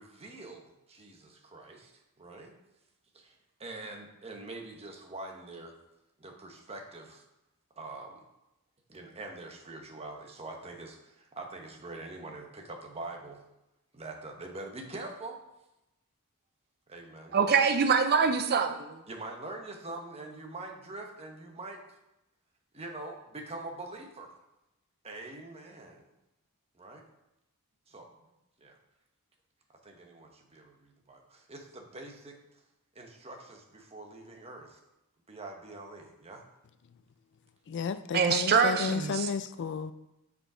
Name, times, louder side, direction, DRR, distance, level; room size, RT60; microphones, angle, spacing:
voice 1, 0.0-1.9 2.2-2.5 3.1-3.3 3.6-5.8 6.2-7.2 7.8-8.2 8.9-13.4 13.9-15.4 16.9-17.4 19.1-22.0 22.7-24.3 25.0-26.1 26.7-27.0 27.9-28.1 28.6-28.8 29.8-32.4 32.9-34.8 35.3-36.4, right 2 dB, 30° right, 2 dB, 1.0 m, -44 dB
voice 2, 17.3-19.0 38.1-39.3, right 6 dB, 45° right, 8 dB, 0.4 m, -25 dB
voice 3, 37.7-39.9, left 5 dB, 55° left, 12 dB, 0.4 m, -32 dB
6.2 x 5.2 x 4.9 m, 0.91 s
head